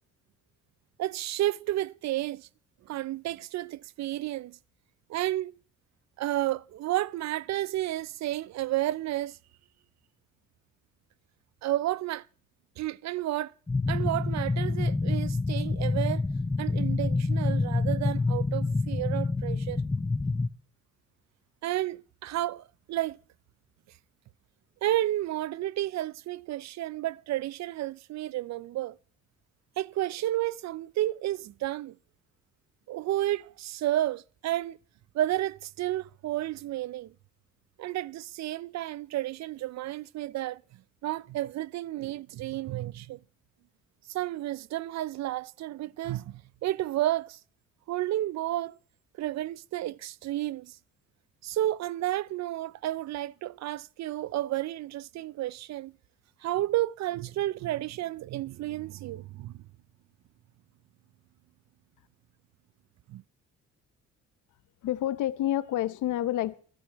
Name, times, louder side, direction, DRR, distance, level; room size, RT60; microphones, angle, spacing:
voice 1, 1.0-2.5 2.9-4.6 5.1-5.5 6.2-9.4 11.6-12.2 12.8-13.5 13.9-16.2 16.6-19.8 21.6-23.2 24.8-29.0 29.8-32.0 32.9-34.8 35.1-37.1 37.8-40.6 41.0-43.2 44.1-47.4 47.9-48.8 49.2-50.8 51.4-55.9 56.4-59.6 63.1-63.2, right 14 dB, 65° right, 0.5 m, -31 dB
sound 1, 13.7-20.5, left 3 dB, 10° left, 0.6 m, -27 dB
voice 2, 64.8-66.5, left 13 dB, 80° left, 0.9 m, -28 dB
21.5 x 12.0 x 3.0 m
cardioid pair, 90°, 30 cm